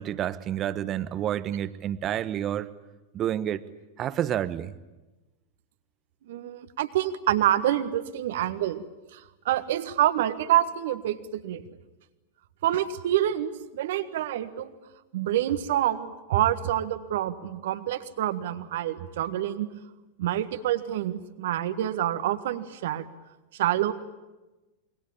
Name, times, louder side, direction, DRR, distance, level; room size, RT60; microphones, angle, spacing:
voice 1, 0.0-2.7 3.1-3.6 4.0-4.7, right 11 dB, 35° right, 14 dB, 1.3 m, -29 dB
voice 2, 6.3-8.8 9.1-9.2 9.4-11.6 12.6-14.8 15.1-19.7 20.2-23.1 23.6-23.9, right 12 dB, 60° right, 11 dB, 1.6 m, -27 dB
27.0 x 22.5 x 8.8 m, 1.1 s
figure-of-eight pair, 95°, 0 cm